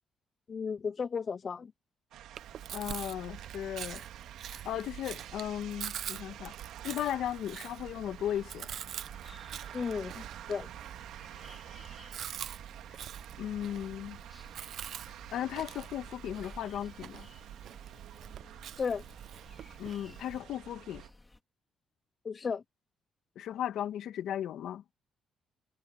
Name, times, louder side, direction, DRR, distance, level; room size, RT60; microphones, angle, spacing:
voice 1, 0.5-1.7 9.7-10.7 18.8-19.0 22.2-22.6, left 5 dB, 40° left, 0.7 m, -34 dB
sound 1, 2.1-21.1, right 11 dB, 85° right, 2.1 m, -49 dB
Chewing mastication, 2.3-20.4, right 10 dB, 70° right, 1.0 m, -45 dB
voice 2, 2.7-4.0 4.5-6.5 6.8-8.7 13.4-14.2 15.3-17.3 19.8-21.0 23.4-24.8, left 11 dB, 75° left, 2.2 m, -36 dB
sound 2, 8.3-21.4, left 2 dB, 15° left, 4.2 m, -57 dB
cardioid pair, 90°, 0 cm